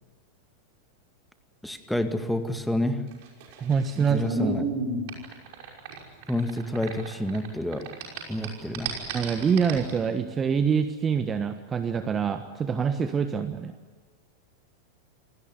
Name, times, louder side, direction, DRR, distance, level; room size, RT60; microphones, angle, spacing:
voice 1, 1.6-3.0 4.0-4.7 6.3-7.9 8.3-9.0, left 1 dB, ahead, 8 dB, 2.1 m, -29 dB
sound 1, 3.1-7.5 7.7-9.9, right 2 dB, 50° right, 5.7 m, -32 dB
voice 2, 3.6-4.2 9.1-13.7, right 6 dB, 20° right, 9 dB, 1.3 m, -25 dB
27.5 x 18.5 x 9.5 m, 1.5 s
figure-of-eight pair, 90°, 0 cm